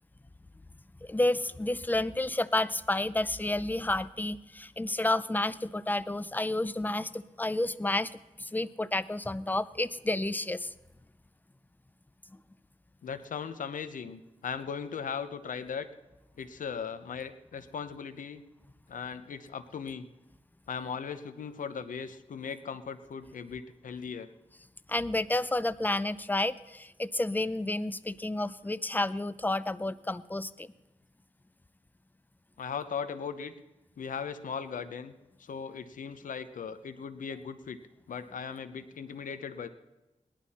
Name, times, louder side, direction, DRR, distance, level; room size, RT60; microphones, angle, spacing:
voice 1, 1.0-8.1 8.4-10.7 24.9-30.7, left 2 dB, 15° left, 15 dB, 0.5 m, -30 dB
voice 2, 13.0-15.9 16.4-18.4 18.9-20.1 20.7-24.3 32.6-33.5 34.0-35.1 35.4-37.8 38.1-39.7, left 6 dB, 90° left, 11 dB, 0.8 m, -38 dB
18.5 x 11.5 x 4.2 m, 1.0 s
cardioid pair, 65°, 13 cm